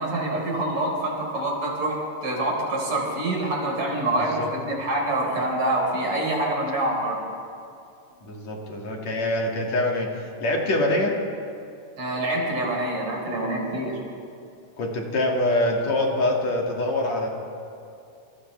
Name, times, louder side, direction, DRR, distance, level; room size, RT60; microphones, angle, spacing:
voice 1, 0.0-2.0 2.2-7.2 12.0-14.0, right 1 dB, 60° right, -2 dB, 5.7 m, -26 dB
voice 2, 8.2-11.1 14.8-17.3, left 1 dB, 60° left, -1 dB, 3.4 m, -24 dB
28.0 x 27.5 x 3.4 m, 2.5 s
omnidirectional pair, 3.6 m